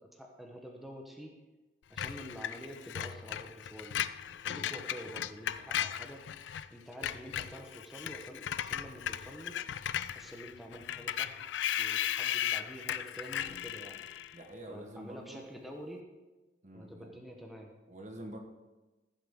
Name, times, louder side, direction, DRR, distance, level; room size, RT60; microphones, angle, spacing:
voice 1, 0.0-1.4 1.9-4.0 4.4-6.3 6.7-9.6 10.1-11.4 11.8-14.0 14.7-16.0 16.7-17.7, equal, ahead, 0 dB, 1.0 m, -47 dB
Screech, 2.0-6.7 6.9-14.4, left 10 dB, 85° left, 0.4 m, -36 dB
voice 2, 14.3-15.4 16.6-17.1 17.9-18.4, right 1 dB, 40° right, 3 dB, 1.2 m, -46 dB
15.0 x 7.3 x 3.7 m, 1.2 s
head